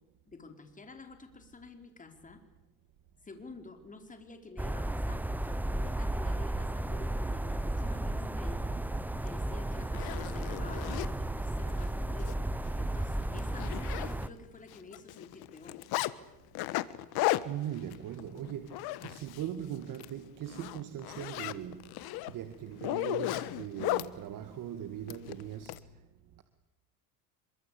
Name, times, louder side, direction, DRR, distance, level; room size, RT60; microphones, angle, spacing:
voice 1, 0.3-2.4 3.2-8.8 9.2-12.3 12.8-15.8 20.7-20.8, left 3 dB, 20° left, 4.6 m, -49 dB
sound 1, 4.6-14.3, right 1 dB, 5° right, 0.9 m, -33 dB
Zipper (clothing), 9.3-9.4 9.8-11.1 11.7-11.9 12.2-12.3 12.7-12.8 13.1-14.5 14.7-16.1 16.6-19.5 19.8-20.1 20.5-24.1 25.1-25.8, left 17 dB, 60° left, 1.5 m, -35 dB
voice 2, 17.4-21.9 22.3-25.7, right 10 dB, 45° right, 2.2 m, -40 dB
26.5 x 24.0 x 8.6 m
supercardioid pair, 110°, 43 cm